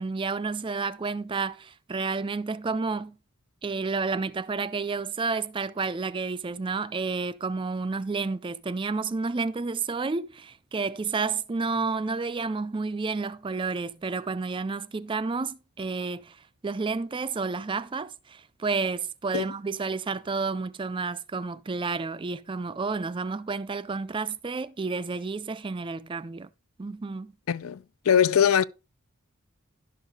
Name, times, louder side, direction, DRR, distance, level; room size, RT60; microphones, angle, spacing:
voice 1, 0.0-3.2 3.6-26.5 26.8-27.3, right 4 dB, 25° right, 0.4 m, -30 dB
voice 2, 27.5-28.6, left 8 dB, 70° left, 0.4 m, -22 dB
11.5 x 6.4 x 3.8 m
head